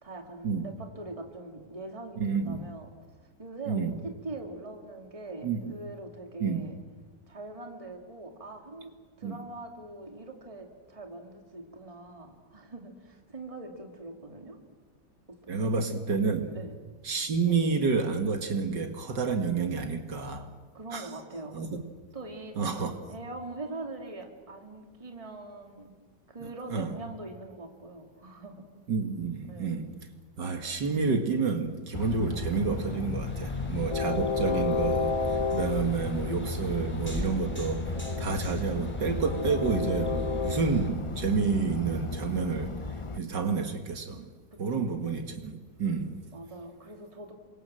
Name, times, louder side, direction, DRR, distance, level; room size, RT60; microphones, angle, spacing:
voice 1, 0.0-2.9 3.4-6.7 7.3-8.9 9.2-14.6 15.3-15.7 16.5-16.8 20.7-21.6 22.1-22.5 23.1-25.9 26.3-28.6 29.4-29.9 33.4-34.4 44.7-44.9 46.3-47.3, right 2 dB, 20° right, 2.7 m, -42 dB
voice 2, 2.2-2.6 3.7-3.9 5.4-5.6 6.4-6.6 9.2-9.4 15.5-16.6 17.0-20.5 20.9-21.1 21.5-21.8 22.6-23.1 26.4-26.9 28.9-29.9 30.4-35.2 35.5-42.8 43.1-44.3 44.6-46.2, right 5 dB, 70° right, 2.4 m, -29 dB
Train, 31.9-43.2, left 4 dB, 45° left, 0.4 m, -32 dB
sound 1, 33.3-40.9, left 1 dB, 5° left, 3.3 m, -39 dB
29.0 x 24.5 x 7.6 m
omnidirectional pair, 2.0 m